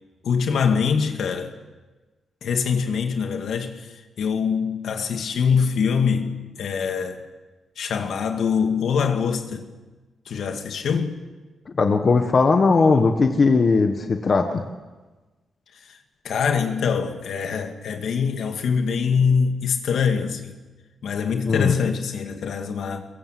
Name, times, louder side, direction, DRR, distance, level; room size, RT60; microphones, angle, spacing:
voice 1, 0.2-1.5 2.4-7.2 7.8-9.6 10.3-11.2 15.9-16.0 16.2-20.5 21.0-23.1, left 6 dB, 65° left, 2.3 m, -24 dB
voice 2, 11.8-14.6 21.5-21.7, left 4 dB, 35° left, 1.3 m, -18 dB
23.0 x 22.5 x 7.7 m
wide cardioid pair, 175°, 0 cm